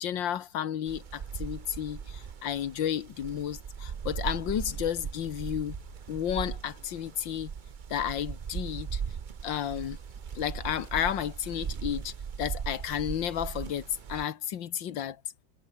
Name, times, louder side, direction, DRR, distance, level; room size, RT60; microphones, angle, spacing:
voice 1, 0.0-5.8 6.1-7.5 7.9-9.0 9.4-10.0 10.4-15.2, left 10 dB, 75° left, 1.9 m, -32 dB
sound 1, 0.9-14.2, right 7 dB, 80° right, 0.4 m, -39 dB
omnidirectional pair, 2.1 m